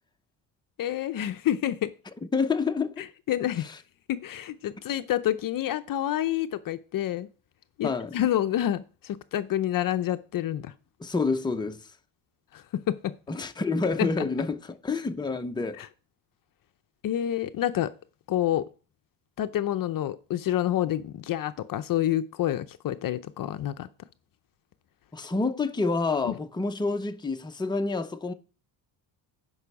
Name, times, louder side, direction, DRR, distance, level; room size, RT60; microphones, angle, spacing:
voice 1, 0.8-1.9 3.3-3.7 4.1-7.3 7.8-10.7 12.5-13.1 14.0-14.1 15.8-15.9 17.0-17.9 18.3-18.7 19.4-23.9 26.2-26.3, left 12 dB, 50° left, 0.6 m, -28 dB
voice 2, 2.3-3.1 3.6-3.8 7.8-8.2 11.0-11.9 13.3-15.8 25.1-28.3, left 4 dB, 10° left, 0.8 m, -28 dB
11.0 x 5.5 x 4.8 m
cardioid pair, 110°, 44 cm